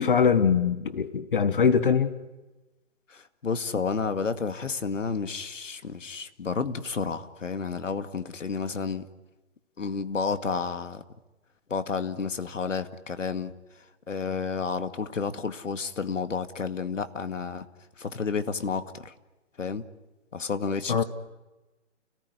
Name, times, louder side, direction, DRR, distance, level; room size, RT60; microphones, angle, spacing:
voice 1, 0.0-2.1 20.9-21.0, left 6 dB, 45° left, 1.5 m, -22 dB
voice 2, 3.1-9.1 9.8-11.0 11.7-13.5 14.1-17.7 18.0-19.1 19.6-19.8 20.3-21.0, left 5 dB, 90° left, 2.3 m, -31 dB
29.5 x 18.5 x 9.6 m
hypercardioid pair, 170°, 37 cm